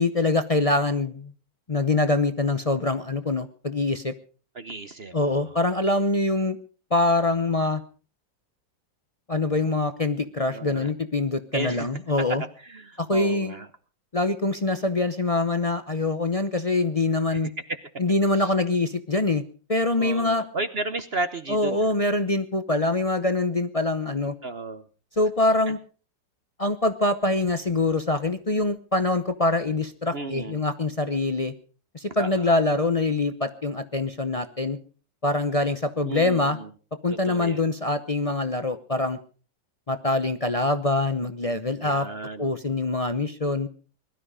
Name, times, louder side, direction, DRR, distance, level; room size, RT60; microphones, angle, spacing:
voice 1, 0.0-1.3 1.7-4.1 5.1-6.6 6.9-7.8 9.3-12.4 13.0-13.5 14.1-17.5 18.0-19.4 19.7-20.4 21.5-24.3 25.2-25.8 26.6-31.5 31.9-34.8 35.2-36.6 37.0-39.2 39.9-42.1 42.4-43.7, left 2 dB, 45° left, 10 dB, 0.4 m, -24 dB
voice 2, 4.5-5.6 10.5-10.9 11.5-11.9 12.6-13.7 17.3-17.8 18.4-18.5 20.0-21.9 24.4-24.8 25.7-25.8 30.1-30.6 32.1-32.5 36.0-36.7 37.1-37.7 41.8-42.6, right 2 dB, 45° right, 11 dB, 0.9 m, -34 dB
21.0 x 13.0 x 5.0 m, 0.39 s
omnidirectional pair, 2.0 m